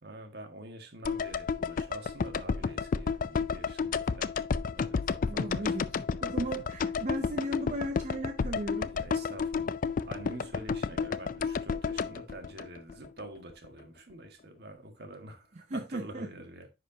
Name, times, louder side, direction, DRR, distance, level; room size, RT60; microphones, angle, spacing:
voice 1, 0.0-4.3 4.6-5.9 8.8-16.7, right 1 dB, 65° right, 1.6 m, -47 dB
sound 1, 1.0-13.2 13.5-13.6, left 5 dB, 50° left, 0.4 m, -31 dB
voice 2, 5.3-5.9 6.2-8.9 15.7-16.3, right 1 dB, 40° right, 0.6 m, -36 dB
10.0 x 4.9 x 2.7 m
head